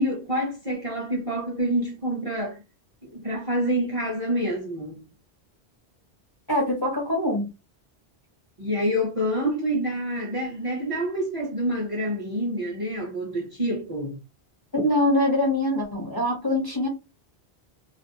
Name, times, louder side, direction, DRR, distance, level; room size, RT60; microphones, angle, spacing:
voice 1, 0.0-2.6 3.0-5.0 8.6-14.2, equal, 40° right, 0.5 m, -27 dB
voice 2, 6.5-7.5 14.7-16.9, left 1 dB, 30° left, 0.5 m, -23 dB
2.3 x 2.0 x 2.5 m
omnidirectional pair, 1.1 m